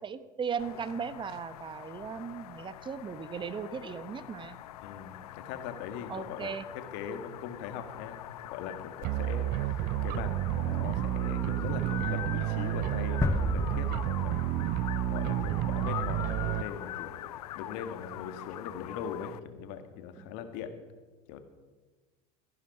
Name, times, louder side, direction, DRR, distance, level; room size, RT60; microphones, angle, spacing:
voice 1, 0.0-4.6 6.1-6.7 20.2-20.3, right 6 dB, 25° right, 15 dB, 0.9 m, -37 dB
sound 1, 0.6-19.4, left 14 dB, 80° left, 0.5 m, -43 dB
voice 2, 4.8-6.5 6.9-8.2 8.5-14.5 15.1-17.2 17.5-20.7 21.3-21.4, left 7 dB, 60° left, 9 dB, 1.7 m, -41 dB
sound 2, 9.0-16.6, right 14 dB, 50° right, 0.5 m, -30 dB
sound 3, 13.2-16.1, left 4 dB, 15° left, 0.4 m, -34 dB
14.0 x 11.0 x 5.4 m, 1.3 s
hypercardioid pair, 85°, 20 cm